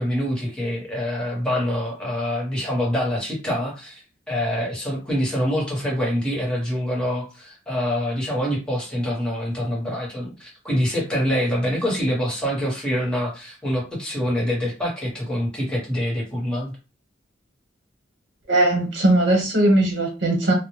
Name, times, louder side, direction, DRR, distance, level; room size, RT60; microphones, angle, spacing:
voice 1, 0.0-16.7, equal, 5° left, 1.0 m, -25 dB
voice 2, 18.5-20.5, right 1 dB, 65° right, 0.9 m, -19 dB
2.2 x 2.0 x 3.0 m
head